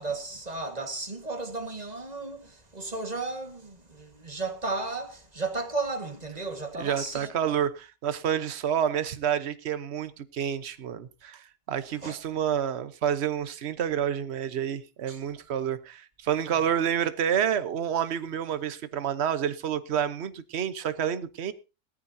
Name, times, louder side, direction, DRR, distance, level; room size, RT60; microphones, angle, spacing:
voice 1, 0.0-7.3 12.0-12.1 15.1-15.2 16.5-16.7, right 3 dB, 25° right, 1.7 m, -34 dB
voice 2, 6.8-21.5, right 9 dB, 45° right, 1.1 m, -29 dB
18.5 x 13.5 x 2.8 m
omnidirectional pair, 1.8 m